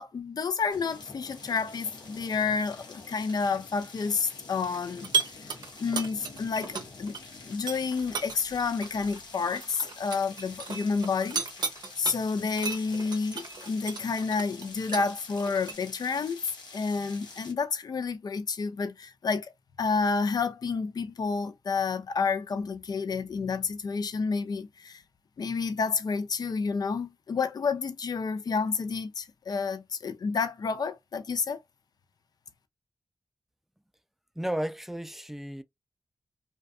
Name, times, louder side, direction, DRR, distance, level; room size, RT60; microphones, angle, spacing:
voice 1, 0.0-5.5 5.8-7.1 7.4-11.4 12.0-16.4 16.7-19.5 19.8-25.0 25.4-31.6, left 5 dB, 65° left, 0.4 m, -30 dB
sound 1, 0.7-17.5, left 3 dB, 80° left, 0.8 m, -47 dB
sound 2, 5.0-7.2 7.5-12.2 12.6-15.7, right 5 dB, 70° right, 0.6 m, -34 dB
voice 2, 34.4-35.6, right 1 dB, 5° right, 0.4 m, -33 dB
2.5 x 2.3 x 2.3 m
cardioid pair, 40°, 7 cm